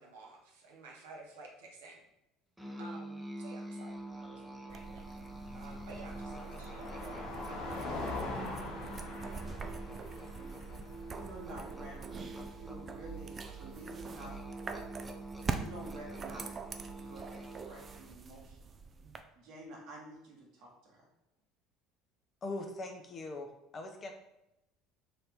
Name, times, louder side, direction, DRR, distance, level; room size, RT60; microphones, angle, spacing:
voice 1, 0.0-2.0 2.8-5.1 5.5-7.1, right 3 dB, 75° right, -1 dB, 0.9 m, -52 dB
Musical instrument, 2.6-18.1, right 1 dB, 5° right, 0.8 m, -46 dB
Car passing by, 3.9-12.2, left 2 dB, 65° left, 0.9 m, -44 dB
sound 1, 4.7-19.2, right 5 dB, 35° right, 0.4 m, -44 dB
voice 2, 11.1-13.3 13.6-14.4 15.5-16.6 16.9-18.7 19.3-21.1, right 1 dB, 60° right, -1 dB, 1.3 m, -50 dB
voice 3, 22.4-24.1, left 2 dB, 40° left, 4 dB, 0.7 m, -41 dB
3.9 x 2.8 x 3.5 m, 0.89 s
hypercardioid pair, 65°, 0 cm